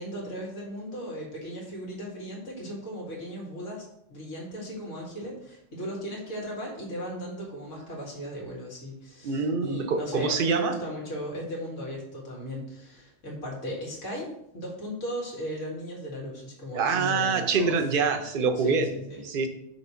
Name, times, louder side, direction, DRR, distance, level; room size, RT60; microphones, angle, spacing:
voice 1, 0.0-14.3 14.5-17.8 18.6-19.2, equal, 80° left, -4 dB, 2.2 m, -37 dB
voice 2, 9.2-10.7 16.7-18.9 19.2-19.5, right 5 dB, 50° right, 6 dB, 0.8 m, -25 dB
6.0 x 3.3 x 5.6 m, 0.78 s
omnidirectional pair, 1.3 m